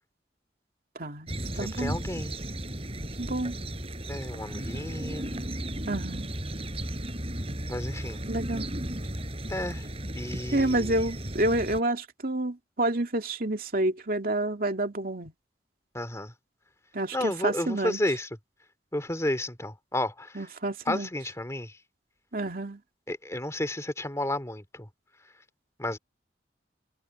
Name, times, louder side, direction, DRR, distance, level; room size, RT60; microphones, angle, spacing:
voice 1, 1.0-2.0 3.2-3.6 5.9-6.3 8.3-8.7 10.5-15.3 16.9-18.0 20.4-21.1 22.3-22.8, right 1 dB, 55° right, 2.6 m, -29 dB
sound 1, 1.3-11.8, right 1 dB, 35° right, 5.6 m, -35 dB
voice 2, 1.5-2.4 4.1-5.3 7.7-8.3 9.5-9.9 10.1-11.0 15.9-16.3 17.1-18.3 18.9-20.4 20.9-21.8 23.1-24.9 25.8-26.0, left 1 dB, 15° left, 2.5 m, -32 dB
head